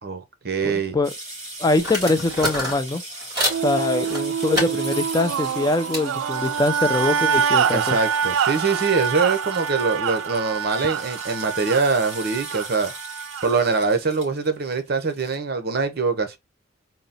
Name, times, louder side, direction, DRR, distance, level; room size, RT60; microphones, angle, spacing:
voice 1, 0.0-1.0 7.7-12.9 13.4-16.4, right 4 dB, 50° right, 0.7 m, -23 dB
voice 2, 0.6-1.1 1.6-3.0 3.6-8.0, left 2 dB, 20° left, 0.3 m, -23 dB
sound 1, 1.0-15.4, right 1 dB, 35° right, 2.3 m, -39 dB
sound 2, 1.8-3.6 4.1-6.1 6.4-9.1, equal, 20° right, 2.5 m, -31 dB
sound 3, 3.5-13.9, right 7 dB, 75° right, 0.3 m, -26 dB
3.9 x 2.1 x 4.0 m
head